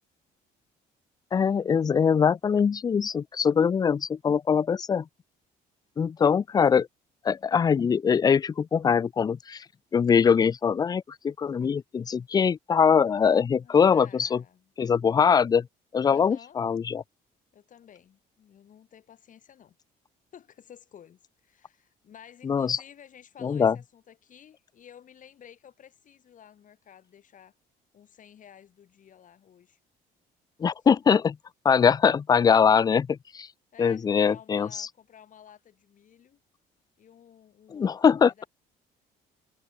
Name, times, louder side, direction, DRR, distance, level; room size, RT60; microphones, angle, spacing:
voice 1, 1.3-5.0 6.0-6.9 7.2-9.6 9.9-14.4 14.8-15.7 15.9-17.0 22.4-22.8 23.4-23.8 30.6-31.4 31.6-33.5 33.8-34.9 37.7-38.4, left 6 dB, 25° left, 0.4 m, -22 dB
voice 2, 6.5-6.8 13.6-14.7 16.0-16.6 17.5-19.8 20.3-27.5 27.9-29.8 33.7-36.4 37.0-38.5, left 9 dB, 50° left, 4.8 m, -52 dB
cardioid pair, 110°, 17 cm